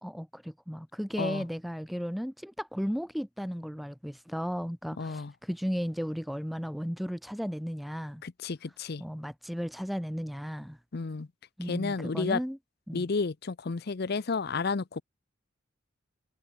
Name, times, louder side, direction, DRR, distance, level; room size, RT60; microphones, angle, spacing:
voice 1, 0.0-8.2 9.0-10.8 11.6-12.6 12.9-13.1, equal, ahead, 0.3 m, -35 dB
voice 2, 5.0-5.3 8.2-9.0 10.9-11.3 11.6-12.4 12.9-15.0, left 4 dB, 55° left, 0.6 m, -31 dB
head